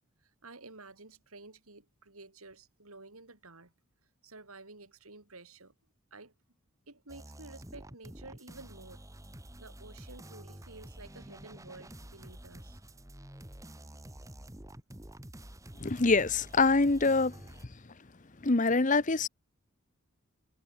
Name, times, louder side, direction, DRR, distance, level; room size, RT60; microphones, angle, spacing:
voice 1, 0.4-3.7 4.2-5.7 6.1-6.3 6.9-9.0 9.6-12.8, right 3 dB, 80° right, 5.0 m, -51 dB
sound 1, 7.1-17.7, right 1 dB, 15° right, 2.0 m, -49 dB
voice 2, 15.8-17.3 18.4-19.3, left 3 dB, 35° left, 0.9 m, -25 dB
head